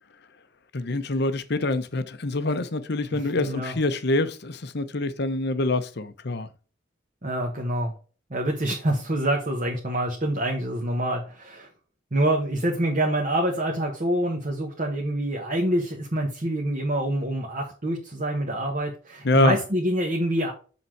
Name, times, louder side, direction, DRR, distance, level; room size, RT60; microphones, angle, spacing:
voice 1, 0.7-6.5 19.2-19.6, left 2 dB, 55° left, 0.8 m, -25 dB
voice 2, 3.4-3.8 7.2-7.9 8.3-11.7 12.1-20.5, right 1 dB, 40° right, 1.2 m, -26 dB
7.0 x 3.8 x 4.6 m
head